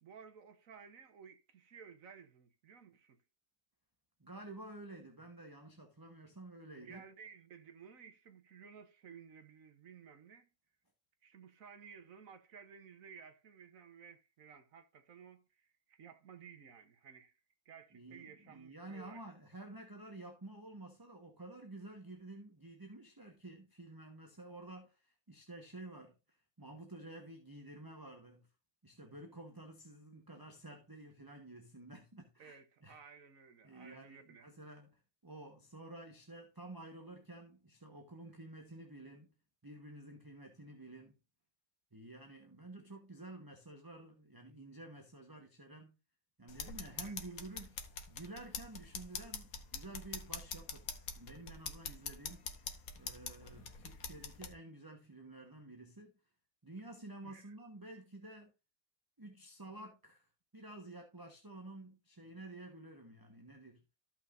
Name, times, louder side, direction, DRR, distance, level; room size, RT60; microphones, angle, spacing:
voice 1, 0.0-3.2 6.8-10.5 11.2-17.4 17.6-19.2 32.4-34.5 47.0-47.2 51.8-52.1 57.2-57.5, right 6 dB, 65° right, 1.5 m, -56 dB
voice 2, 4.2-7.0 17.9-28.5 28.8-33.0 33.6-39.3 39.6-41.2 41.9-46.0 46.4-47.8 48.1-50.9 51.1-56.1 56.6-58.5 59.2-63.8, right 2 dB, 15° right, 1.3 m, -51 dB
sound 1, 46.5-54.5, left 5 dB, 70° left, 1.7 m, -45 dB
14.0 x 5.8 x 2.6 m
omnidirectional pair, 1.6 m